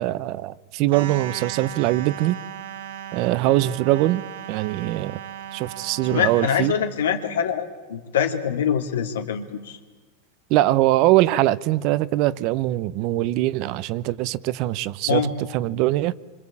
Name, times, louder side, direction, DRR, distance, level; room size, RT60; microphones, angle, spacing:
voice 1, 0.0-2.4 3.1-4.2 4.5-5.2 5.5-6.7 10.5-16.1, right 16 dB, 45° right, 0.9 m, -22 dB
sound 1, 0.9-6.7, right 10 dB, 75° right, 2.2 m, -36 dB
voice 2, 6.1-9.8 15.1-15.4, left 7 dB, 90° left, 2.9 m, -24 dB
26.0 x 25.5 x 8.7 m
supercardioid pair, 140°, 0 cm